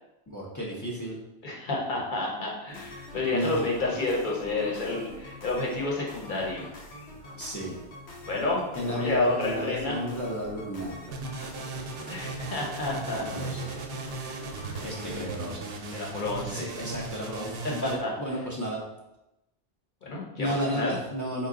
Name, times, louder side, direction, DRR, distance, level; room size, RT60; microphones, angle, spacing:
voice 1, 0.3-1.2 3.3-3.9 7.3-7.8 8.7-11.0 13.1-13.7 14.8-16.0 16.5-18.8 20.4-21.5, equal, 20° left, -4 dB, 0.6 m, -33 dB
voice 2, 1.4-6.7 8.3-8.6 8.9-10.0 12.1-13.2 15.9-16.7 17.6-18.1 20.0-21.0, left 2 dB, 50° left, -2 dB, 1.0 m, -30 dB
sound 1, 2.7-15.2, equal, 75° left, 1.0 m, -44 dB
sound 2, 11.1-18.0, right 3 dB, 70° right, 0.8 m, -37 dB
4.2 x 2.3 x 3.7 m, 0.92 s
omnidirectional pair, 1.1 m